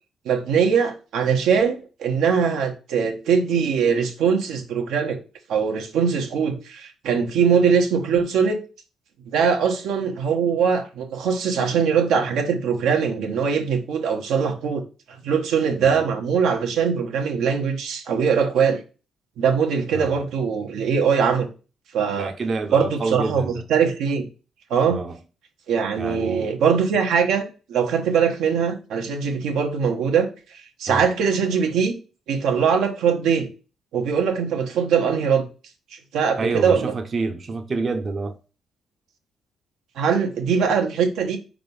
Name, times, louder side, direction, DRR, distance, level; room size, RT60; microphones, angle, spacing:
voice 1, 0.2-5.2 5.5-8.6 9.2-14.8 15.1-18.8 19.4-21.5 21.9-22.3 22.7-24.3 24.7-25.0 25.7-31.9 32.3-33.5 33.9-35.4 36.1-36.9 40.0-41.4, right 6 dB, 80° right, 1.3 m, -21 dB
voice 2, 19.9-20.2 22.2-23.6 24.9-25.1 26.0-26.5 30.9-31.0 36.4-38.4, right 3 dB, 45° right, 0.9 m, -27 dB
4.8 x 3.8 x 5.4 m
cardioid pair, 90°, 0 cm